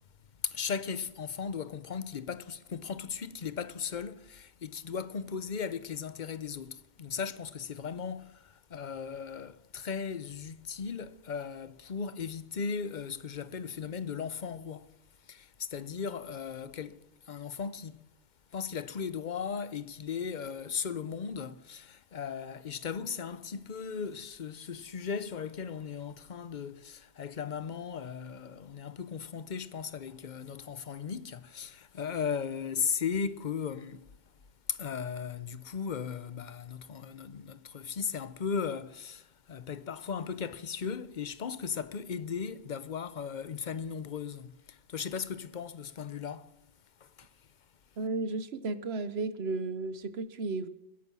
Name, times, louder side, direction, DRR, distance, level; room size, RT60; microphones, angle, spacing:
voice 1, 0.4-15.0 15.2-18.1 18.5-34.1 34.7-46.5 47.0-47.3, left 6 dB, 45° left, 0.8 m, -37 dB
voice 2, 48.0-50.7, right 3 dB, 55° right, 1.1 m, -34 dB
20.5 x 11.0 x 6.2 m
omnidirectional pair, 1.3 m